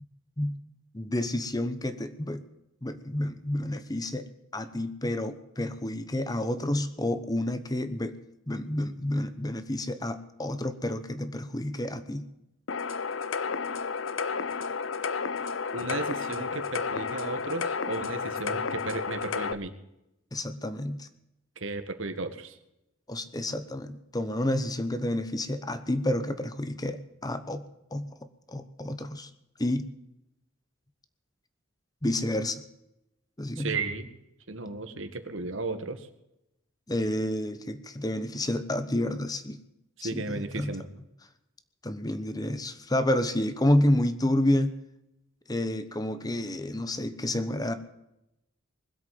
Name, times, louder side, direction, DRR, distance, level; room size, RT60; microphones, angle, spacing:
voice 1, 0.9-2.4 2.8-4.3 4.5-8.2 8.5-12.3 20.3-21.1 23.1-27.6 27.9-28.1 28.5-29.3 29.6-29.9 32.0-32.6 33.4-33.8 36.9-39.6 40.0-40.7 41.8-44.7 45.5-47.7, left 1 dB, 20° left, 11 dB, 1.0 m, -29 dB
sound 1, 12.7-19.5, left 5 dB, 85° left, 0.8 m, -32 dB
voice 2, 15.7-19.7 21.6-22.6 33.6-34.1 34.5-36.1 40.0-40.8, right 3 dB, 80° right, 8 dB, 1.7 m, -34 dB
20.5 x 8.2 x 7.7 m, 0.88 s
head